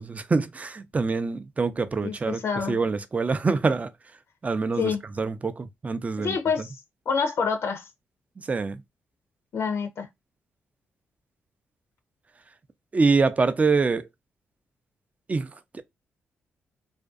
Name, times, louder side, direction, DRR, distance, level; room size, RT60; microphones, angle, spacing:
voice 1, 0.0-2.4 2.7-3.9 4.4-6.4 8.4-8.8 12.9-14.1 15.3-15.8, right 4 dB, 30° right, 0.4 m, -25 dB
voice 2, 2.0-2.8 4.8-5.0 6.2-6.8 7.1-7.9 9.5-10.1, left 5 dB, 65° left, 0.5 m, -27 dB
2.4 x 2.2 x 2.4 m
supercardioid pair, 55°, 5 cm